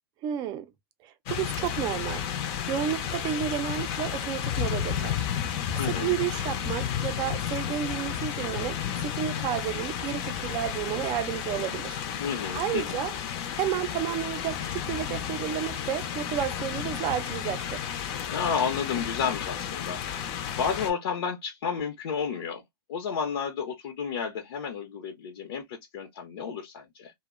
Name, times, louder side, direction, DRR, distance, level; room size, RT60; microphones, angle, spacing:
voice 1, 0.2-0.7 1.0-2.3 2.7-5.3 5.9-12.0 12.5-13.1 13.6-17.9, right 11 dB, 35° right, 0.4 m, -31 dB
sound 1, 1.3-20.9, left 9 dB, 45° left, 0.6 m, -32 dB
voice 2, 5.8-6.1 12.2-13.0 18.3-20.0 20.3-22.6 22.9-27.1, left 6 dB, 75° left, 0.8 m, -31 dB
2.6 x 2.1 x 2.4 m
hypercardioid pair, 135°, 13 cm